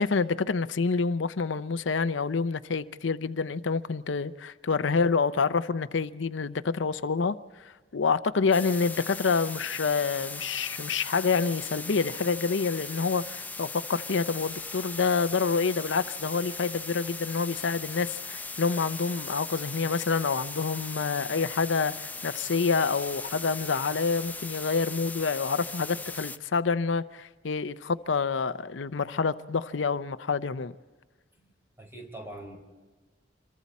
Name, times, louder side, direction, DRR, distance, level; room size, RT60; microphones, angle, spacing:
voice 1, 0.0-7.4 7.9-30.7, left 5 dB, 90° left, 0.6 m, -27 dB
sound 1, 8.5-26.4, left 3 dB, 10° left, 0.5 m, -39 dB
voice 2, 31.3-32.6, right 1 dB, 15° right, 4.6 m, -44 dB
27.5 x 23.0 x 4.2 m
head